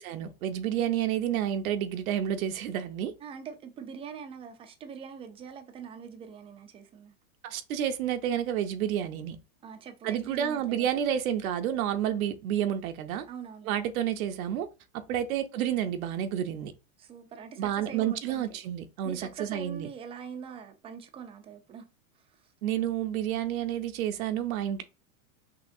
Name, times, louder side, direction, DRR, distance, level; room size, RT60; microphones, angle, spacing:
voice 1, 0.0-3.1 7.4-9.4 10.0-13.2 13.7-14.7 14.9-16.7 17.6-19.9 22.6-24.8, right 10 dB, 75° right, 0.7 m, -30 dB
voice 2, 3.2-7.1 9.6-11.1 13.3-13.7 15.1-15.3 17.0-18.5 19.0-21.9 22.2-22.5, right 7 dB, 15° right, 0.4 m, -43 dB
5.7 x 2.8 x 2.6 m
hypercardioid pair, 125°, 42 cm